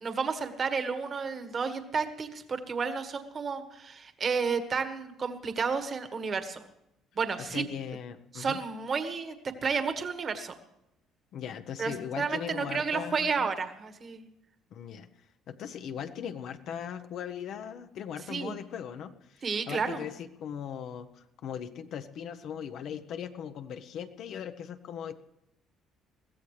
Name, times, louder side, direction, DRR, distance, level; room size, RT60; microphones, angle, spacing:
voice 1, 0.0-6.6 7.1-7.6 8.3-9.3 9.6-10.5 11.8-14.3 18.3-18.5 19.4-20.0, right 5 dB, 35° right, 8 dB, 1.5 m, -31 dB
voice 2, 7.4-8.6 11.3-13.5 14.7-15.1 15.5-25.1, left 8 dB, 65° left, 8 dB, 0.9 m, -39 dB
22.0 x 15.0 x 3.2 m, 0.84 s
cardioid pair, 130°, 0 cm